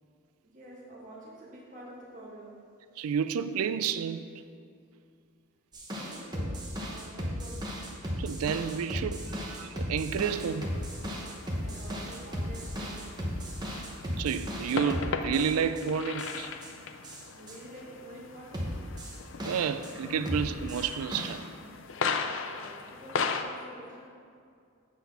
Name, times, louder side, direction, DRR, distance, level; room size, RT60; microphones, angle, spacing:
voice 1, 0.4-2.5 5.8-7.7 11.5-13.3 17.3-18.8 22.5-24.1, right 1 dB, 35° right, 1.9 m, -48 dB
voice 2, 3.0-4.3 8.2-10.7 14.2-16.5 19.4-21.5, right 7 dB, 80° right, 0.4 m, -30 dB
sound 1, 5.7-15.8 16.2-16.7 17.0-17.6 18.5-19.9 20.3-21.3, equal, 20° right, 0.8 m, -36 dB
sound 2, 10.3-23.4, left 5 dB, 60° left, 0.4 m, -38 dB
8.0 x 4.2 x 5.5 m
head